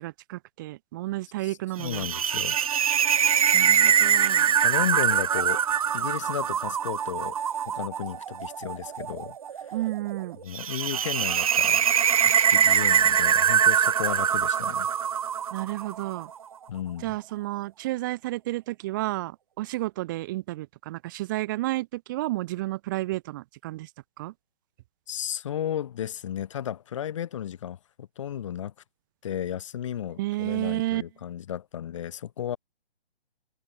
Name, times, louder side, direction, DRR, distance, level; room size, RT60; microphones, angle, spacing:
voice 1, 0.0-2.1 3.5-4.5 9.7-10.4 15.5-16.3 17.0-23.9 24.2-24.3 30.2-31.0, right 17 dB, 20° right, 5.4 m, -31 dB
voice 2, 1.4-2.6 4.6-5.6 5.9-7.4 7.7-9.4 10.4-11.9 12.2-14.9 16.7-17.1 25.1-28.7 29.2-32.6, left 10 dB, 30° left, 7.0 m, -34 dB
sound 1, 1.8-16.1, right 8 dB, 35° right, 2.9 m, -23 dB
hypercardioid pair, 175°, 31 cm